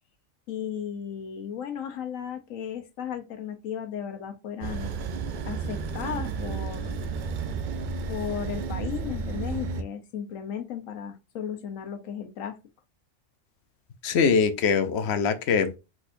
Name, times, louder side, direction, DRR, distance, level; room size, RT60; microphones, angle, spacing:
voice 1, 0.5-4.9 5.4-6.9 8.1-12.6, left 8 dB, 85° left, 1.3 m, -35 dB
sound 1, 4.6-9.8, right 4 dB, 65° right, 0.4 m, -32 dB
voice 2, 14.0-15.8, left 5 dB, 60° left, 0.9 m, -23 dB
4.5 x 4.2 x 2.5 m
omnidirectional pair, 1.4 m